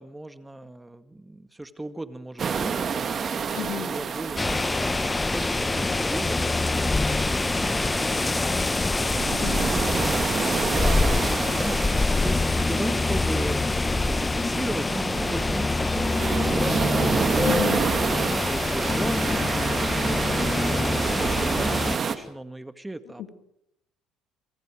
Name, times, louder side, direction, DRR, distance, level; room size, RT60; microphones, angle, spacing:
voice 1, 0.0-9.3 9.9-19.6 19.9-20.2 20.6-23.3, right 1 dB, 10° right, 11 dB, 2.0 m, -38 dB
sound 1, 2.4-22.2, right 6 dB, 45° right, 2.1 m, -30 dB
voice 2, 3.5-3.9 9.3-9.9 17.4-17.8, left 11 dB, 75° left, 8 dB, 2.7 m, -32 dB
sound 2, 4.4-22.0, left 3 dB, 20° left, 0.8 m, -25 dB
sound 3, 10.7-20.5, left 8 dB, 50° left, 4.1 m, -43 dB
28.0 x 24.0 x 4.9 m, 0.76 s
supercardioid pair, 70°, 0 cm